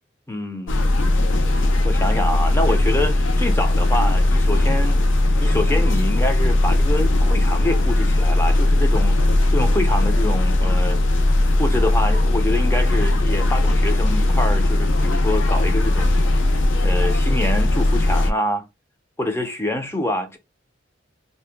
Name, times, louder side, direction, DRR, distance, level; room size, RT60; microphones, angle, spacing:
voice 1, 0.3-1.0 1.5-5.0 5.4-11.0 11.6-16.2 16.8-18.6 19.2-20.4, left 1 dB, 15° left, 0.5 m, -26 dB
sound 1, 0.7-18.3, left 1 dB, 75° left, 0.5 m, -18 dB
2.7 x 2.1 x 3.4 m
head